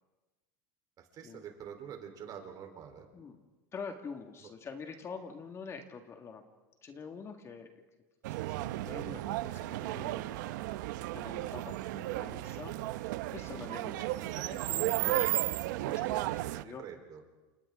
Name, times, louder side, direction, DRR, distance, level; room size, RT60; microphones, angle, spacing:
voice 1, 1.0-3.1 4.4-4.5 13.5-13.7 16.5-17.2, right 8 dB, 40° right, 4 dB, 4.0 m, -47 dB
voice 2, 3.7-6.4 6.8-7.7 8.3-16.8, left 5 dB, 25° left, 5 dB, 1.9 m, -46 dB
sound 1, 8.2-16.6, right 16 dB, 75° right, 0.8 m, -34 dB
30.0 x 28.0 x 3.8 m, 1.2 s
supercardioid pair, 125°, 10 cm